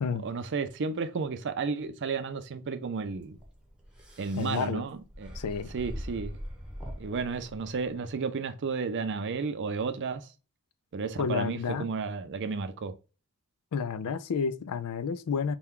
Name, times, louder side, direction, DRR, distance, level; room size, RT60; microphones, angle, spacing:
voice 1, 0.2-3.4 4.2-5.4 5.7-6.4 7.0-10.3 10.9-12.9, right 4 dB, 55° right, 0.5 m, -32 dB
sound 1, 3.0-8.1, equal, 5° right, 0.9 m, -43 dB
voice 2, 4.3-4.8 5.4-5.7 11.2-11.9 13.7-15.6, left 6 dB, 85° left, 0.4 m, -30 dB
4.3 x 2.3 x 3.6 m
head